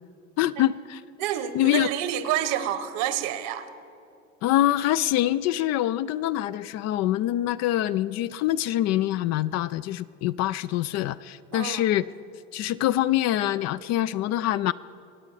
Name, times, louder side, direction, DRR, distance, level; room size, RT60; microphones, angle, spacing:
voice 1, 0.4-1.0 1.5-1.9 4.4-12.1 12.5-14.7, left 13 dB, 45° left, 15 dB, 0.4 m, -25 dB
voice 2, 1.2-3.7 11.5-11.8, right 11 dB, 60° right, 12 dB, 1.2 m, -28 dB
24.5 x 9.0 x 4.9 m, 2.6 s
hypercardioid pair, 80°, 38 cm